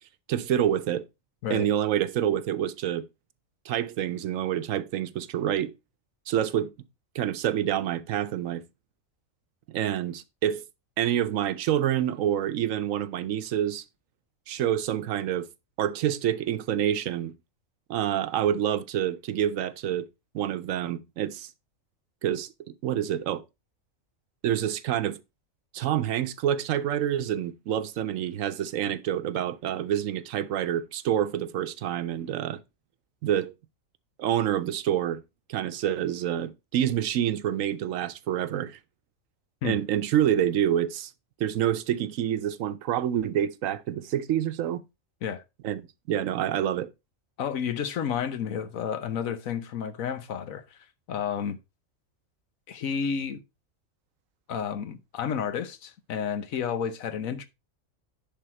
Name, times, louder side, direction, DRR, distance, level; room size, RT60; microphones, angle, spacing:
voice 1, 0.3-1.1 1.5-3.1 3.6-5.7 6.3-6.7 7.1-8.6 9.7-10.6 11.0-13.8 14.5-15.5 15.8-17.3 17.9-20.1 20.3-21.5 22.2-22.5 22.8-23.4 24.4-25.2 25.7-32.6 33.2-33.5 34.2-35.2 35.5-38.8 39.6-41.1 41.4-44.8 45.6-46.9, right 10 dB, 80° right, 1.1 m, -27 dB
voice 2, 47.4-51.6 52.7-53.4 54.5-57.5, left 7 dB, 90° left, 1.3 m, -31 dB
10.0 x 4.1 x 4.3 m
omnidirectional pair, 1.4 m